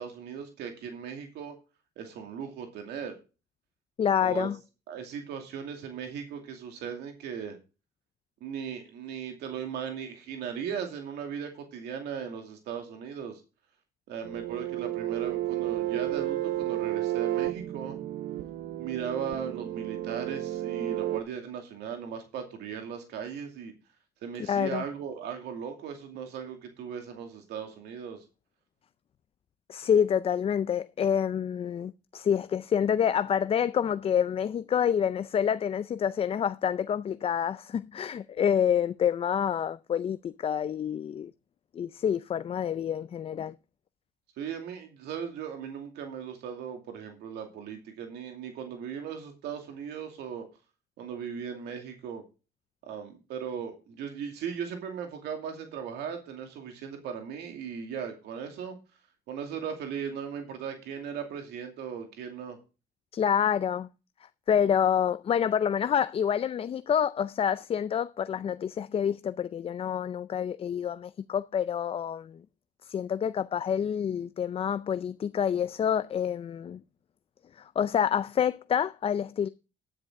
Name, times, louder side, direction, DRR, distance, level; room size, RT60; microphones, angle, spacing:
voice 1, 0.0-1.6 2.0-3.2 4.2-4.5 4.9-7.6 8.4-13.4 14.1-18.0 18.8-23.7 24.2-28.2 44.4-50.5 51.0-52.2 52.9-58.8 59.3-62.6, right 7 dB, 80° right, 2.4 m, -38 dB
voice 2, 4.0-4.6 24.5-24.8 29.7-41.3 41.7-43.5 63.1-63.9 64.2-72.4 72.8-76.8 77.6-79.5, left 8 dB, 35° left, 0.4 m, -27 dB
sound 1, 14.2-21.2, right 14 dB, 65° right, 0.9 m, -32 dB
10.5 x 10.0 x 3.7 m
cardioid pair, 110°, 17 cm